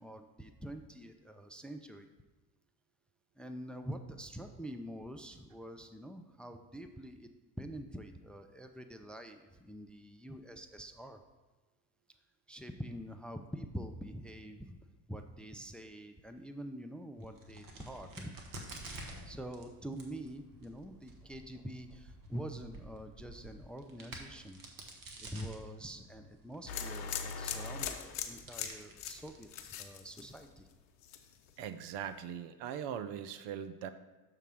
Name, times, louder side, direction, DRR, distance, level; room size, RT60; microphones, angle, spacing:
voice 1, 0.0-2.1 3.4-7.3 7.6-11.2 12.5-14.8 15.1-18.3 19.3-24.6 25.2-30.7, equal, ahead, 7 dB, 0.5 m, -46 dB
Crack, 17.2-30.4, right 2 dB, 45° right, 1.5 m, -51 dB
sound 1, 26.7-30.7 31.0-31.5, left 7 dB, 80° left, 0.7 m, -40 dB
voice 2, 31.6-33.9, right 9 dB, 65° right, 11 dB, 0.6 m, -40 dB
6.6 x 3.8 x 6.3 m, 1.2 s
hypercardioid pair, 60°, 45 cm